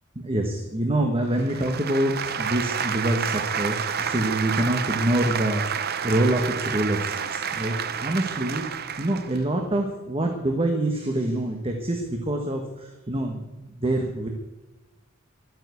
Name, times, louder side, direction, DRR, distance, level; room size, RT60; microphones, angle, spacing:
voice 1, 0.2-14.3, right 1 dB, 25° right, 3 dB, 1.3 m, -26 dB
sound 1, 1.4-9.4, right 7 dB, 50° right, 0.7 m, -29 dB
12.5 x 9.3 x 8.3 m, 1.1 s
head